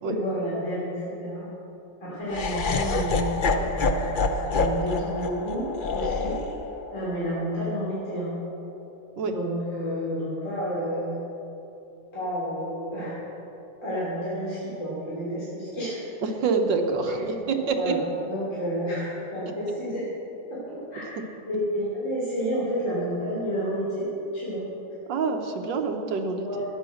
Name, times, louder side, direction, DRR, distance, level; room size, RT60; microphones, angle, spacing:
voice 1, 0.0-1.5 2.0-4.2 4.5-6.4 6.9-8.3 9.3-11.2 12.1-13.1 13.8-16.0 17.0-18.0 18.2-20.0 20.5-20.6 20.9-21.2 21.5-24.1 24.3-24.6 26.4-26.6, equal, 40° left, -9 dB, 3.7 m, -30 dB
Laughter, 2.3-8.4, left 3 dB, 90° left, 0.4 m, -28 dB
voice 2, 16.2-18.0 25.1-26.5, right 4 dB, 75° right, 4 dB, 1.7 m, -26 dB
13.5 x 10.0 x 6.4 m, 2.9 s
omnidirectional pair, 2.0 m